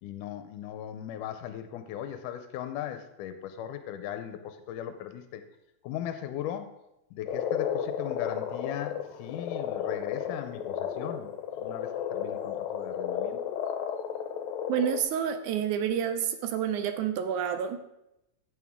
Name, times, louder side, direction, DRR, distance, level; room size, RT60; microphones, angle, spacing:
voice 1, 0.0-5.4 5.8-6.7 7.1-11.3 11.6-13.4, left 10 dB, 85° left, 9 dB, 2.2 m, -38 dB
Frog, 7.3-15.0, left 9 dB, 70° left, 2.0 m, -33 dB
voice 2, 14.7-17.8, right 9 dB, 75° right, 8 dB, 2.0 m, -29 dB
15.0 x 6.5 x 3.6 m, 0.87 s
omnidirectional pair, 3.7 m